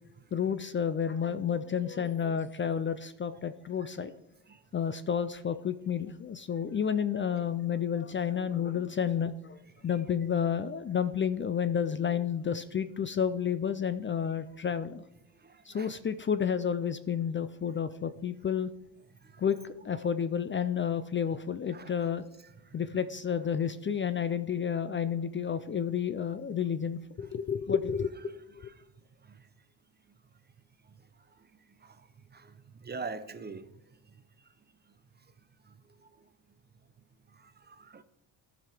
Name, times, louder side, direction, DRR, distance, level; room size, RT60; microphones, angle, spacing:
voice 1, 0.3-4.1 4.7-15.0 15.7-18.7 19.4-19.6 19.8-22.2 22.7-28.4, left 8 dB, 30° left, 12 dB, 0.4 m, -31 dB
voice 2, 15.4-15.9 21.7-21.9 31.8-31.9 32.3-32.5 32.8-33.6 37.7-38.0, right 4 dB, 25° right, 12 dB, 0.6 m, -41 dB
13.5 x 5.1 x 4.5 m, 0.98 s
cardioid pair, 85°, 42 cm